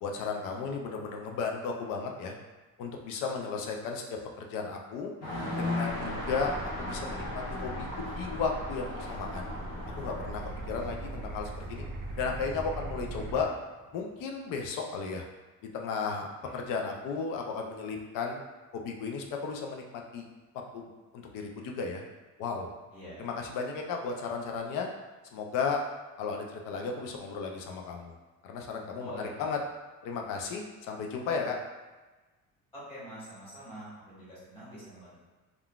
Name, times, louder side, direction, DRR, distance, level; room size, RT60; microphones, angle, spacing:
voice 1, 0.0-2.3 2.8-5.1 5.6-6.5 6.8-9.5 10.0-11.8 12.2-13.5 13.9-15.2 15.6-18.4 18.7-20.3 20.7-22.0 22.4-22.7 23.2-24.9 25.3-25.8 26.2-28.1 28.4-29.6 30.0-31.6, left 5 dB, 80° left, 2 dB, 0.5 m, -34 dB
sound 1, 5.2-13.5, left 1 dB, 55° left, 0.8 m, -38 dB
sound 2, 5.9-13.5, right 1 dB, 30° right, 0.4 m, -41 dB
voice 2, 22.9-23.3 29.0-29.6 32.7-35.3, equal, 15° left, -10 dB, 1.5 m, -45 dB
3.7 x 2.3 x 2.3 m, 1.2 s
cardioid pair, 155°, 32 cm